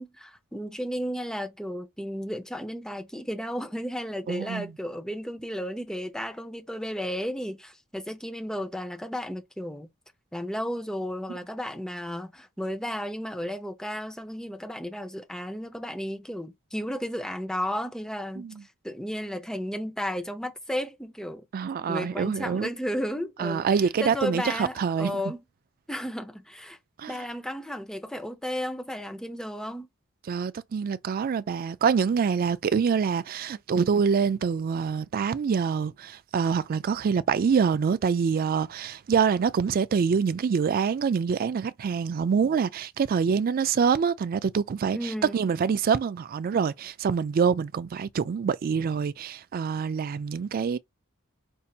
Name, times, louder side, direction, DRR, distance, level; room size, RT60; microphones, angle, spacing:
voice 1, 0.0-9.9 10.3-18.5 18.8-21.4 21.9-23.7 24.0-25.4 25.9-26.8 27.1-29.9 44.9-45.4, equal, 5° left, 0.7 m, -33 dB
voice 2, 4.3-4.7 18.4-18.6 21.5-22.7 23.4-25.2 27.0-27.2 30.3-50.8, right 6 dB, 45° right, 0.3 m, -25 dB
5.4 x 2.7 x 2.4 m
head